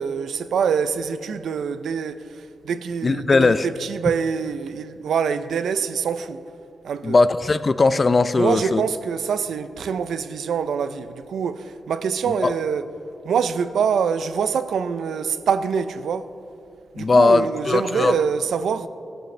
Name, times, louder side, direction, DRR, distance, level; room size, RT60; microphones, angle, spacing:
voice 1, 0.0-6.4 6.8-7.2 8.3-12.9 13.2-16.3 16.9-18.9, right 6 dB, 90° right, 0.5 m, -25 dB
voice 2, 3.0-3.7 7.0-8.8 12.4-12.5 17.0-18.1, left 3 dB, 40° left, 0.4 m, -18 dB
16.5 x 12.5 x 3.2 m
cardioid pair, 80°, 0 cm